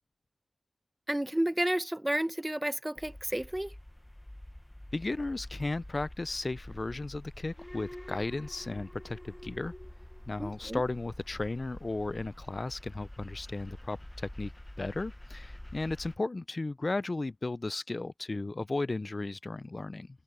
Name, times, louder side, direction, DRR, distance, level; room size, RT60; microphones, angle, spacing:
voice 1, 1.1-3.7 10.4-10.8, right 1 dB, 15° right, 1.0 m, -31 dB
sound 1, 3.0-16.2, left 1 dB, 15° left, 1.0 m, -47 dB
voice 2, 4.9-9.7 10.3-14.5 14.8-20.1, left 2 dB, 45° left, 0.4 m, -35 dB
cardioid pair, 50°, 0 cm